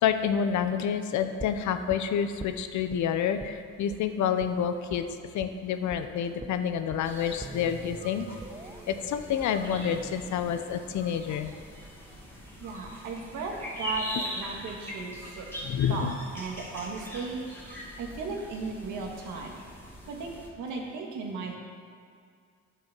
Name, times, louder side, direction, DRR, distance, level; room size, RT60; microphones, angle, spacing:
voice 1, 0.0-5.1 5.3-8.3 8.9-11.5 15.6-16.1, left 8 dB, 70° left, 9 dB, 0.8 m, -28 dB
sound 1, 1.4-3.0 3.4-3.6 3.9-4.0 4.4-4.5 4.9-5.0 5.4-5.6 5.9-6.0 6.4-12.4 12.7-12.8, right 2 dB, 15° right, 0.7 m, -45 dB
sound 2, 7.0-20.5, left 1 dB, 5° left, 2.2 m, -42 dB
voice 2, 12.6-15.5 15.9-19.6 20.1-20.3 20.6-21.6, right 4 dB, 80° right, 1 dB, 1.7 m, -36 dB
8.8 x 7.1 x 6.0 m, 2.2 s
cardioid pair, 90°, 30 cm